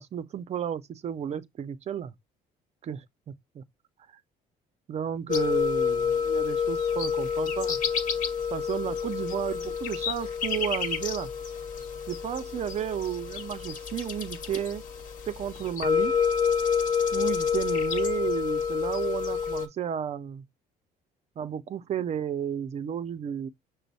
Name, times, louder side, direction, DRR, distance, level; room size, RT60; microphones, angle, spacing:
voice 1, 0.0-2.1 2.8-3.6 4.9-7.8 8.5-11.3 12.1-14.8 15.3-16.1 17.1-20.4 21.4-23.5, right 9 dB, 40° right, 0.4 m, -33 dB
sound 1, 5.3-19.7, left 7 dB, 50° left, 1.0 m, -28 dB
5.9 x 2.0 x 4.0 m
cardioid pair, 110°, 17 cm